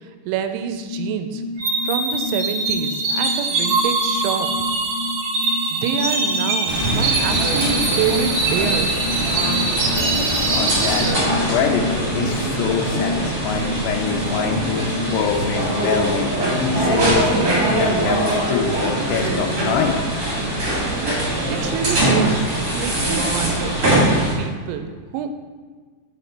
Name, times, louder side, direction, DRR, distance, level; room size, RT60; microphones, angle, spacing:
voice 1, 0.3-1.4 1.8-4.5 5.7-8.9 21.5-22.4 22.7-25.3, right 8 dB, 90° right, 8 dB, 2.9 m, -27 dB
sound 1, 0.8-15.3, left 2 dB, 45° left, 1.8 m, -30 dB
sound 2, 1.6-11.1, right 3 dB, 70° right, 2.4 m, -23 dB
sound 3, 6.7-24.3, right 1 dB, 45° right, 2.0 m, -22 dB
voice 2, 10.5-17.3 17.7-20.0, left 6 dB, 85° left, 2 dB, 2.4 m, -25 dB
5.8 x 5.5 x 4.2 m, 1.5 s
omnidirectional pair, 5.3 m